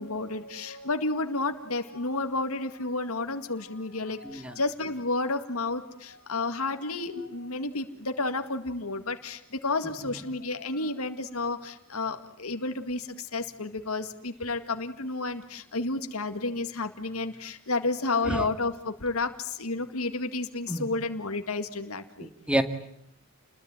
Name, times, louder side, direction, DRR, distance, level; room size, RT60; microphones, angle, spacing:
voice 1, 0.0-22.3, left 3 dB, 90° left, 7 dB, 2.1 m, -31 dB
voice 2, 4.2-4.6 7.2-7.3 10.0-10.1 18.2-18.5 20.7-20.9 22.2-22.6, right 1 dB, 5° right, 9 dB, 2.0 m, -29 dB
30.0 x 21.5 x 9.2 m, 0.74 s
head